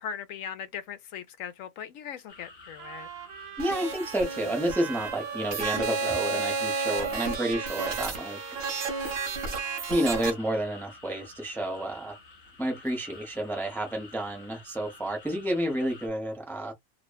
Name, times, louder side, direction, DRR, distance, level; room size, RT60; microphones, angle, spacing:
voice 1, 0.0-3.1, left 8 dB, 80° left, 1.0 m, -39 dB
sound 1, 2.3-16.1, left 3 dB, 50° left, 0.9 m, -50 dB
Trumpet, 2.8-10.4, right 7 dB, 90° right, 1.1 m, -41 dB
voice 2, 3.6-8.4 9.9-12.2 12.6-16.7, right 1 dB, ahead, 0.7 m, -30 dB
sound 2, 3.6-10.3, right 4 dB, 55° right, 1.0 m, -32 dB
2.8 x 2.1 x 2.2 m
omnidirectional pair, 1.4 m